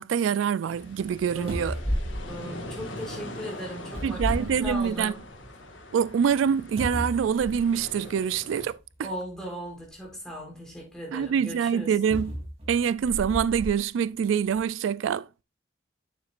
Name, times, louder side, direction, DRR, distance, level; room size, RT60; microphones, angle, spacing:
voice 1, 0.0-1.8 4.0-5.1 5.9-8.8 11.1-12.3 12.7-15.3, right 7 dB, 85° right, 0.3 m, -25 dB
sound 1, 0.6-8.7, left 1 dB, 85° left, 1.8 m, -42 dB
sound 2, 1.1-1.2 1.5-3.2 3.9-5.3 5.7-5.8 6.8-7.9 8.8-8.9 12.1-13.8 14.4-14.6, equal, 30° right, 3.0 m, -33 dB
voice 2, 1.3-2.0 2.3-5.2 9.0-11.9, equal, 5° left, 4.0 m, -38 dB
9.2 x 7.2 x 2.5 m
head